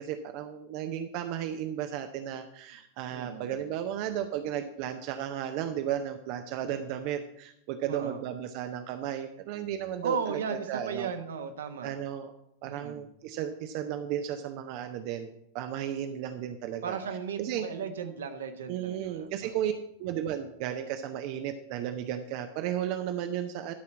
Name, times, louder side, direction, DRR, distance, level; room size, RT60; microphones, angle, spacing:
voice 1, 0.0-11.1 11.8-12.3 12.6-17.0 17.4-17.7 18.7-19.7 20.0-23.7, right 10 dB, 45° right, 7 dB, 0.7 m, -34 dB
voice 2, 3.1-3.6 7.9-8.2 10.0-11.9 12.6-13.0 16.8-19.7, right 6 dB, 65° right, 7 dB, 1.1 m, -36 dB
13.0 x 4.3 x 7.2 m, 0.76 s
figure-of-eight pair, 90°, 0 cm